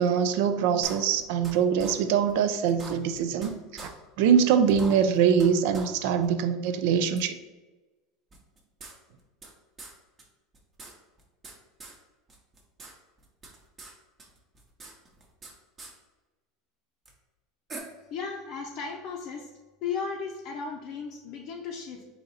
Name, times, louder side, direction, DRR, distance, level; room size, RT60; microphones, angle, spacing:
voice 1, 0.0-3.9 4.2-7.4, right 7 dB, 70° right, 10 dB, 0.4 m, -23 dB
sound 1, 0.8-1.5 1.8-1.9 2.3-2.4 2.7-3.5 3.8-3.9 4.3-4.4 4.7-5.5 5.7-5.9 6.2-6.3 7.2-7.3 8.3-9.5 9.8-9.9 10.2-10.3 10.5-11.5 11.8-12.0 12.3-12.9 13.2-13.9 14.2-15.5 15.8-15.9 17.1-17.2 17.7-17.8, right 3 dB, 25° right, 0.9 m, -43 dB
voice 2, 18.1-19.5 19.8-22.1, left 5 dB, 55° left, 0 dB, 0.5 m, -35 dB
3.8 x 2.8 x 4.1 m, 1.2 s
supercardioid pair, 125°, 0 cm